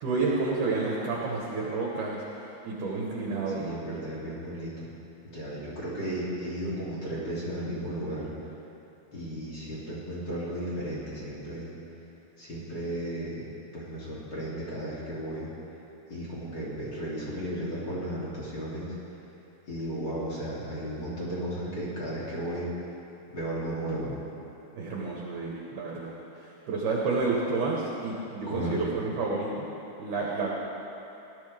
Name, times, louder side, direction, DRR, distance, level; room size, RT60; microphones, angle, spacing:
voice 1, 0.0-3.6 24.8-29.7 30.0-30.5, right 3 dB, 60° right, -3 dB, 2.4 m, -30 dB
voice 2, 3.6-4.7 5.3-8.3 9.1-11.8 12.4-13.4 13.7-15.5 16.1-18.9 19.7-22.7 23.3-24.1 28.5-28.8, right 1 dB, 30° left, -8 dB, 3.0 m, -34 dB
18.5 x 12.0 x 3.5 m, 3.0 s
omnidirectional pair, 4.9 m